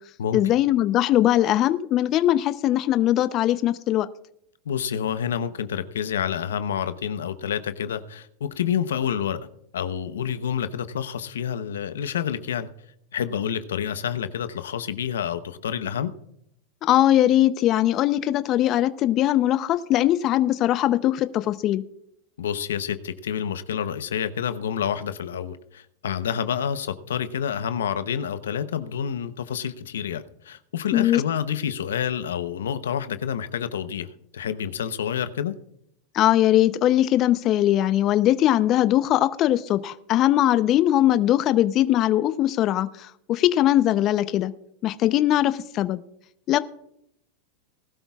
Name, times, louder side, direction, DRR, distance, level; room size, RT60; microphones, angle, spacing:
voice 1, 0.3-4.1 16.8-21.8 30.9-31.2 36.1-44.5 44.8-46.0 46.5-46.6, left 13 dB, 40° left, 0.7 m, -20 dB
voice 2, 4.7-9.4 9.7-12.7 13.1-16.1 22.4-34.1 34.3-35.6, left 8 dB, 85° left, 0.8 m, -28 dB
19.5 x 12.5 x 2.4 m
hypercardioid pair, 105°, 0 cm